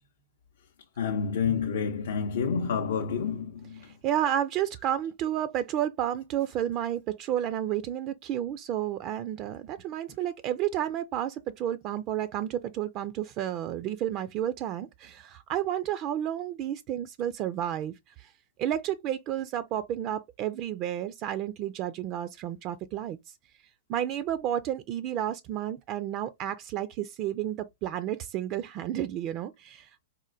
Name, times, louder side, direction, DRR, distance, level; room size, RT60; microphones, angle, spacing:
voice 1, 1.0-3.9, left 6 dB, 75° left, 0.5 m, -29 dB
voice 2, 3.8-18.3 18.6-23.2 23.9-30.1, right 11 dB, 40° right, 0.3 m, -31 dB
4.2 x 2.2 x 2.5 m
hypercardioid pair, 125°, 0 cm